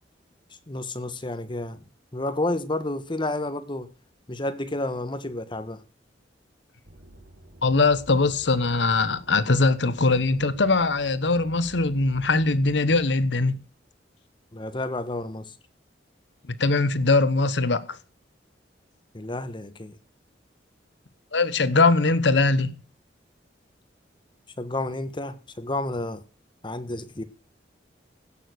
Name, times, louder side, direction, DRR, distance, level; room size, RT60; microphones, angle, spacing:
voice 1, 0.7-1.8 2.1-3.9 4.3-5.8 14.5-15.5 19.1-19.9 24.6-26.2 26.6-27.2, left 2 dB, 25° left, 1.2 m, -30 dB
sound 1, 6.8-13.3, right 1 dB, 70° right, 4.2 m, -50 dB
voice 2, 7.6-13.6 16.6-18.0 21.3-22.7, left 3 dB, 70° left, 1.0 m, -21 dB
16.0 x 6.7 x 6.3 m
head